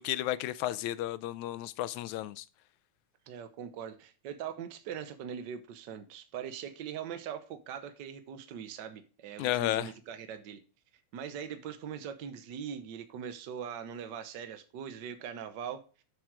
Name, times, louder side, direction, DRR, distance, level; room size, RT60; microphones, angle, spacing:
voice 1, 0.0-2.5 9.4-9.9, left 14 dB, 85° left, 2.0 m, -32 dB
voice 2, 3.3-10.6 11.1-15.8, right 8 dB, 85° right, 0.9 m, -41 dB
7.6 x 7.6 x 4.8 m
omnidirectional pair, 3.3 m